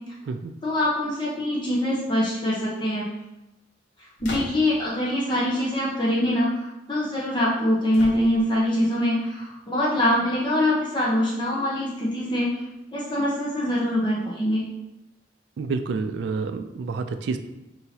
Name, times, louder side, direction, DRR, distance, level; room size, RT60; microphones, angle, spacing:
voice 1, 0.6-3.1 4.2-6.6 6.9-12.5 12.9-14.7, left 1 dB, 25° left, -5 dB, 0.8 m, -24 dB
sound 1, 4.2-4.9 7.9-8.7, equal, 90° left, 1.1 m, -36 dB
voice 2, 15.6-17.4, right 4 dB, 70° right, 9 dB, 0.3 m, -28 dB
5.5 x 2.8 x 2.8 m, 0.93 s
head